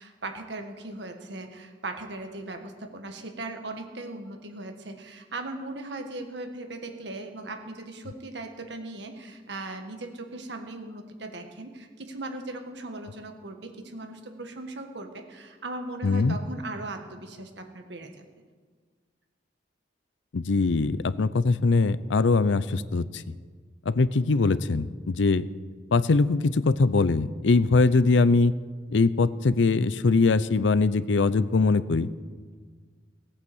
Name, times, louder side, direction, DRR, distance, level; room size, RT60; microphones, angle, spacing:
voice 1, 0.0-18.1, right 2 dB, 70° right, 4 dB, 1.6 m, -38 dB
voice 2, 16.0-16.4 20.3-23.2 23.9-25.5 25.9-28.5 28.9-32.1, left 3 dB, 80° left, 16 dB, 0.6 m, -22 dB
17.5 x 8.8 x 7.9 m, 1.5 s
head